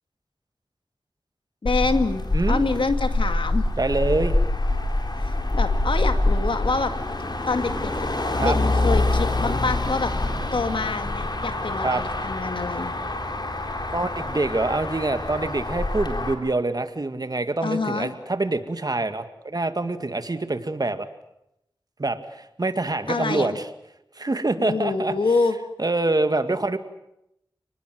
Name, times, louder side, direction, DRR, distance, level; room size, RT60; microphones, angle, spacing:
voice 1, 1.6-3.7 5.2-6.9 7.5-8.1 8.4-10.1 10.5-12.9 17.6-18.1 23.1-23.6 24.6-25.5, left 3 dB, 85° left, 8 dB, 2.3 m, -26 dB
Motor vehicle (road), 1.7-16.3, left 2 dB, 60° left, 4.2 m, -25 dB
voice 2, 3.8-4.4 8.4-8.6 10.6-10.7 11.8-12.0 13.9-21.1 22.0-23.7 24.2-25.1 25.8-26.8, right 2 dB, 50° right, 9 dB, 2.2 m, -25 dB
29.5 x 20.0 x 7.8 m, 0.83 s
wide cardioid pair, 45°, 8 cm